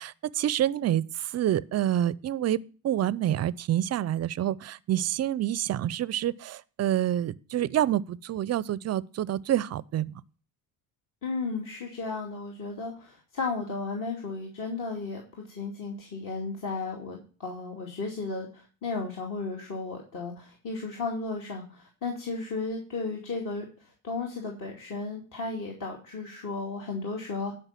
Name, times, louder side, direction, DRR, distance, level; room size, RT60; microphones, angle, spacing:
voice 1, 0.0-2.6 2.8-10.2, right 12 dB, 35° right, 0.5 m, -27 dB
voice 2, 11.2-27.5, left 3 dB, 45° left, 2.5 m, -34 dB
12.0 x 5.5 x 5.8 m
supercardioid pair, 95°, 44 cm